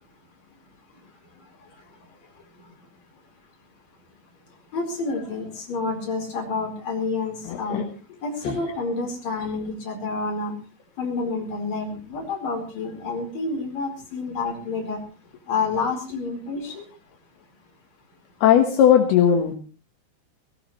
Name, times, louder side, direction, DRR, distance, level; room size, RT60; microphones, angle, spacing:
voice 1, 4.7-7.8 8.2-10.5 11.0-15.0 15.5-16.9, left 3 dB, 40° left, 2 dB, 5.6 m, -29 dB
voice 2, 7.5-7.8 8.4-8.6 18.4-19.5, left 9 dB, 70° left, 3 dB, 3.4 m, -18 dB
19.5 x 18.0 x 3.2 m, 0.36 s
omnidirectional pair, 4.8 m